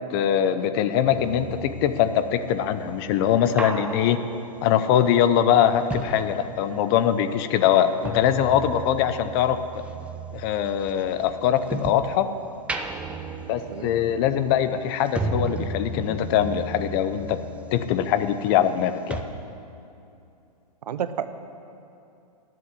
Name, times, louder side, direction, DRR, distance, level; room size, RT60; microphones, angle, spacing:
voice 1, 0.1-4.2 4.6-9.6 10.3-12.3 13.5-17.4 17.7-19.2, left 10 dB, 35° left, 11 dB, 0.7 m, -22 dB
sound 1, 1.0-7.0 7.3-12.1 12.5-18.8 19.1-19.2, right 3 dB, 5° right, 0.6 m, -35 dB
voice 2, 20.9-21.3, right 9 dB, 75° right, 12 dB, 0.8 m, -29 dB
10.5 x 7.6 x 9.7 m, 2.6 s
hypercardioid pair, 135°, 20 cm